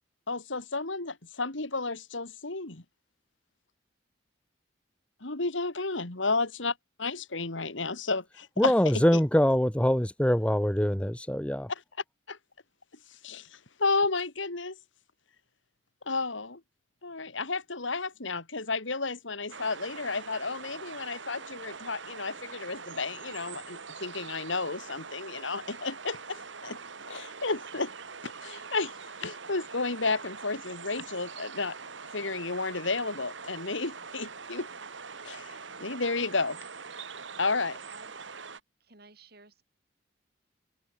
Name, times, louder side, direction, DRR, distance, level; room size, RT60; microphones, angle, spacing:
voice 1, 0.3-2.8 5.2-6.7 7.0-8.7 9.1-9.2 12.3-12.4 13.2-14.8 16.1-16.6 17.0-26.8 27.1-27.9 28.2-28.9 29.2-31.8 32.1-34.7 35.2-36.6 37.4-37.8, left 3 dB, 75° left, 2.5 m, -32 dB
voice 2, 8.6-11.7, equal, 5° left, 0.9 m, -24 dB
sound 1, 19.5-38.6, right 5 dB, 70° right, 2.1 m, -43 dB
voice 3, 38.8-39.6, right 3 dB, 50° right, 7.2 m, -53 dB
open air
head